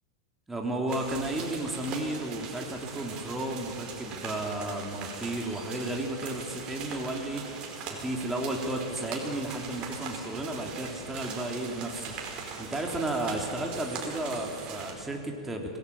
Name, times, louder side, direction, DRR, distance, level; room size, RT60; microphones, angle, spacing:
voice 1, 0.5-15.8, right 1 dB, 10° right, 1 dB, 3.2 m, -33 dB
sound 1, 0.9-14.9, right 5 dB, 35° right, 5.1 m, -41 dB
26.5 x 19.0 x 7.3 m, 2.2 s
figure-of-eight pair, 95°, 3 cm